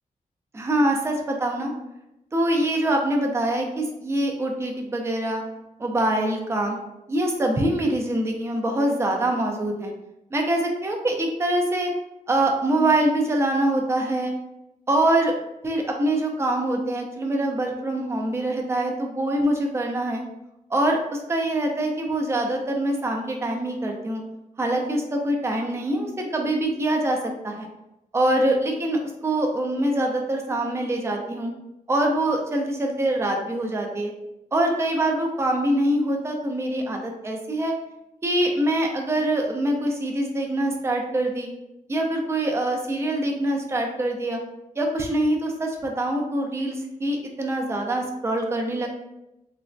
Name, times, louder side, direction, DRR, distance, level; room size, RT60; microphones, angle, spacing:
voice 1, 0.5-1.7 2.3-5.4 5.8-6.8 7.1-9.9 10.3-11.9 12.3-14.3 14.9-15.3 15.6-20.2 20.7-24.2 24.6-27.2 27.4-27.7 28.1-31.5 31.9-34.1 34.5-37.7 38.2-41.5 41.9-44.4 44.8-48.9, right 1 dB, 20° right, 1 dB, 0.4 m, -24 dB
3.2 x 2.0 x 2.5 m, 0.90 s
wide cardioid pair, 110°, 14 cm